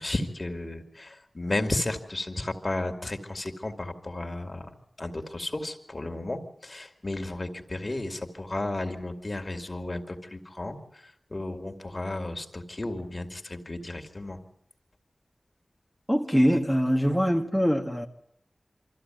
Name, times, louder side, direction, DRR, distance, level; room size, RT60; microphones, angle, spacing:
voice 1, 0.0-4.7 5.0-14.4, left 2 dB, 45° left, 5 dB, 2.5 m, -33 dB
voice 2, 16.1-18.1, equal, ahead, 2 dB, 1.6 m, -23 dB
24.5 x 14.5 x 9.2 m, 0.74 s
wide cardioid pair, 45°, 0 cm